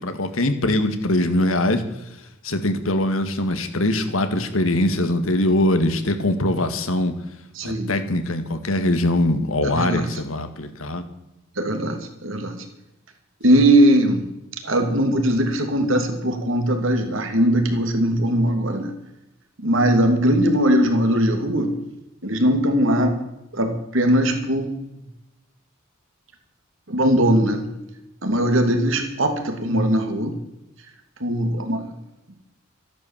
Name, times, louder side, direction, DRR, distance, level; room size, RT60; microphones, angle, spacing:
voice 1, 0.0-1.8 2.4-7.1 7.6-11.0, left 1 dB, 85° left, 7 dB, 2.0 m, -22 dB
voice 2, 7.5-7.9 9.6-10.2 11.6-12.6 13.4-14.3 14.6-18.9 19.6-21.8 22.2-23.2 23.5-24.8 26.9-27.7 28.2-30.4 31.2-31.9, right 1 dB, 70° right, 5 dB, 2.7 m, -20 dB
14.0 x 11.0 x 7.4 m, 0.91 s
head